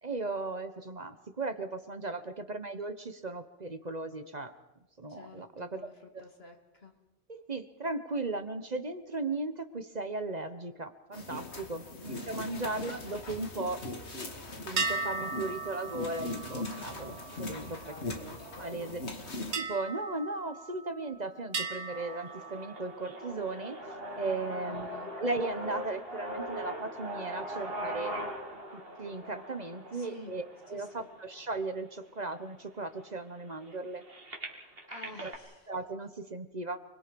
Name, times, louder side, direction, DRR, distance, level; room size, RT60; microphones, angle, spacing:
voice 1, 0.0-4.5 5.0-5.9 7.3-13.8 14.6-17.9 18.6-19.0 19.6-23.8 24.2-28.2 28.7-34.0 35.2-35.3 35.7-36.8, right 2 dB, 40° right, 9 dB, 1.3 m, -37 dB
voice 2, 5.1-5.9 6.2-7.0 11.9-12.1 12.7-13.0 17.8-18.4 24.6-25.1 29.9-30.3 30.7-31.1 34.9-35.6, left 2 dB, 65° left, 3 dB, 2.9 m, -49 dB
sound 1, 11.1-19.5, left 2 dB, 80° left, 2.5 m, -40 dB
sound 2, 14.8-18.4 19.5-21.1 21.5-23.2, right 4 dB, 85° right, 1.8 m, -38 dB
sound 3, 21.9-31.9 32.5-32.6 32.9-35.4, right 1 dB, 60° right, 2.9 m, -41 dB
29.0 x 21.5 x 5.3 m, 0.99 s
omnidirectional pair, 1.1 m